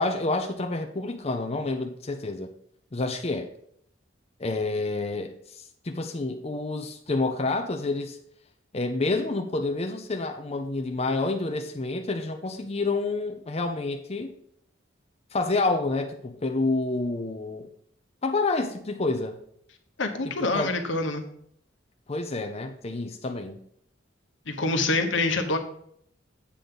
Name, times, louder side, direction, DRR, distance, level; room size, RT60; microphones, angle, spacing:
voice 1, 0.0-2.5 2.9-3.5 4.4-8.2 8.7-14.3 15.3-17.6 18.2-19.4 20.2-20.7 22.1-23.6, left 3 dB, 35° left, 5 dB, 0.7 m, -28 dB
voice 2, 20.0-21.2 24.5-25.6, left 2 dB, 80° left, 5 dB, 1.2 m, -26 dB
8.4 x 3.9 x 7.0 m, 0.67 s
head